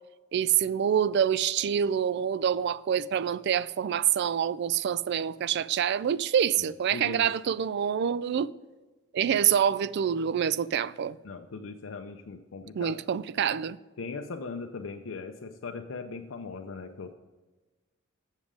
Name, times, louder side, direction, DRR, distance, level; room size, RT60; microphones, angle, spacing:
voice 1, 0.3-8.5 9.1-11.2 12.8-13.8, right 8 dB, 55° right, 0.3 m, -26 dB
voice 2, 6.6-7.3 9.3-9.4 11.2-13.0 14.0-17.1, left 4 dB, 70° left, 0.5 m, -39 dB
7.4 x 7.2 x 5.0 m
head